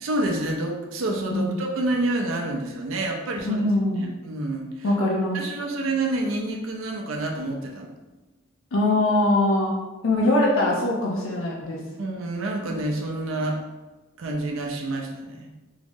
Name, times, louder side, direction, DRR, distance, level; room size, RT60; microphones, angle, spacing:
voice 1, 0.0-3.6 4.0-4.9 5.3-7.9 12.0-13.6 14.2-15.5, right 2 dB, 75° right, 1 dB, 0.5 m, -28 dB
voice 2, 3.4-4.1 4.8-5.4 8.7-9.7 10.0-11.8, left 1 dB, 75° left, -3 dB, 0.5 m, -22 dB
3.6 x 2.0 x 3.5 m, 1.1 s
head